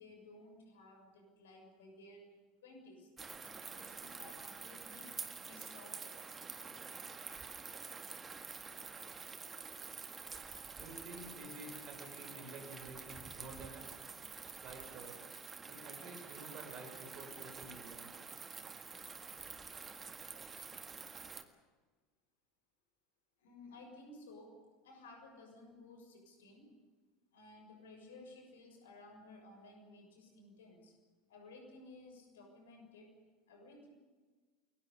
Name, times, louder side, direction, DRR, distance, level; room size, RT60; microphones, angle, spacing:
voice 1, 0.0-2.3 2.6-6.3 23.4-24.6 24.8-26.7 27.3-30.9 31.3-33.1 33.5-33.9, left 2 dB, 65° left, 4 dB, 6.6 m, -56 dB
sound 1, 3.2-21.4, right 5 dB, 20° right, 1.8 m, -48 dB
voice 2, 10.7-14.0 14.6-15.2 15.7-18.1, right 2 dB, 40° right, 4 dB, 6.8 m, -50 dB
29.5 x 22.5 x 5.5 m, 1.4 s
figure-of-eight pair, 75°, 0 cm